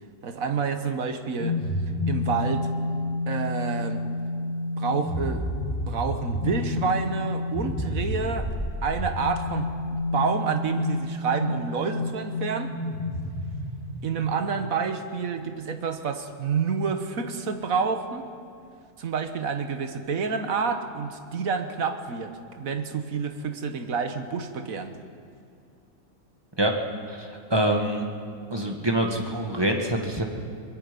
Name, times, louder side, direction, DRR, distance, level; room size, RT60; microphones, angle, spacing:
voice 1, 0.2-1.6 2.1-2.7 3.3-4.1 4.8-5.5 5.9-8.5 8.8-12.8 14.0-18.3 19.0-24.9, right 5 dB, 90° right, 7 dB, 1.7 m, -28 dB
sound 1, 1.4-14.2, left 2 dB, 35° left, 2.3 m, -30 dB
voice 2, 27.1-28.1 28.5-30.2, right 1 dB, 20° right, 2 dB, 1.7 m, -25 dB
23.5 x 21.5 x 5.3 m, 2.3 s
omnidirectional pair, 1.4 m